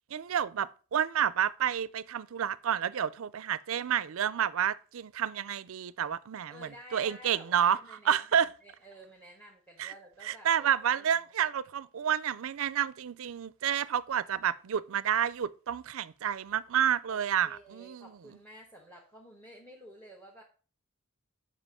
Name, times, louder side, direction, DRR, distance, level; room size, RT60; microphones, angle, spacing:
voice 1, 0.1-7.8 8.1-8.5 9.8-9.9 10.2-18.1, right 9 dB, 65° right, 0.4 m, -30 dB
voice 2, 6.5-11.1 17.1-20.4, equal, 10° left, 1.2 m, -52 dB
7.5 x 5.3 x 4.9 m
head